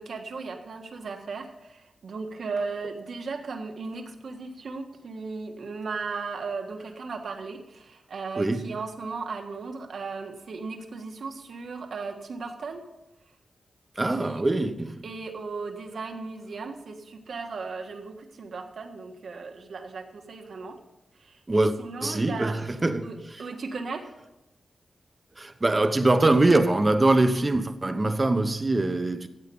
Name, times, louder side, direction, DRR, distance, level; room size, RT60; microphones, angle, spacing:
voice 1, 0.0-12.8 14.2-14.4 15.0-20.8 21.2-22.6 23.0-24.0, right 4 dB, 75° right, 1.5 m, -36 dB
voice 2, 8.3-8.7 14.0-15.0 21.5-21.7 22.0-23.5 25.4-29.3, right 2 dB, 30° right, 1.0 m, -23 dB
14.5 x 8.2 x 5.5 m
wide cardioid pair, 85°, 0 cm